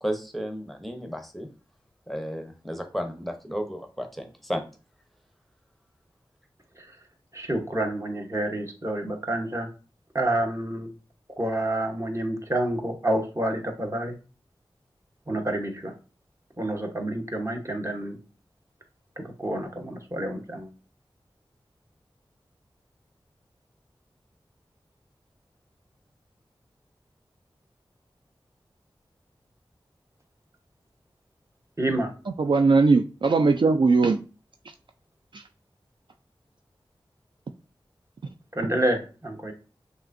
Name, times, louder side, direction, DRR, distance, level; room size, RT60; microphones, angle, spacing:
voice 1, 0.0-1.5 2.1-4.6, equal, ahead, 0.8 m, -33 dB
voice 2, 7.3-9.7 10.1-10.9 11.4-14.1 15.3-15.9 16.6-18.2 19.2-20.7 31.8-32.1 38.5-39.5, right 1 dB, 30° right, 1.0 m, -28 dB
voice 3, 32.4-34.2 35.3-35.4, right 4 dB, 60° right, 0.3 m, -19 dB
5.9 x 2.6 x 2.6 m
wide cardioid pair, 45°, 9 cm